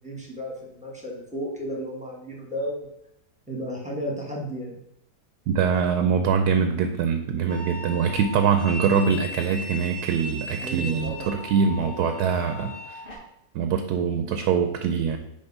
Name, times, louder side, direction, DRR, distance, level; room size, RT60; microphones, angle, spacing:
voice 1, 0.0-2.9 3.5-4.8 10.6-11.4, equal, 5° right, -1 dB, 1.1 m, -33 dB
voice 2, 5.5-13.0 13.5-15.2, right 6 dB, 70° right, 6 dB, 1.1 m, -23 dB
sound 1, 7.5-13.2, left 1 dB, 30° left, 1.8 m, -37 dB
5.2 x 4.5 x 5.4 m, 0.78 s
omnidirectional pair, 1.9 m